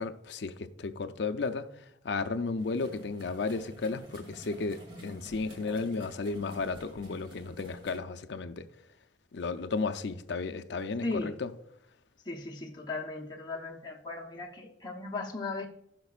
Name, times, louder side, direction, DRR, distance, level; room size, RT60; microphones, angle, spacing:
voice 1, 0.0-8.7 9.3-11.5, left 4 dB, 65° left, 0.5 m, -34 dB
sound 1, 2.6-8.0, right 1 dB, 25° right, 1.8 m, -50 dB
voice 2, 12.3-15.7, left 3 dB, 20° left, 0.9 m, -37 dB
16.5 x 6.0 x 2.4 m
head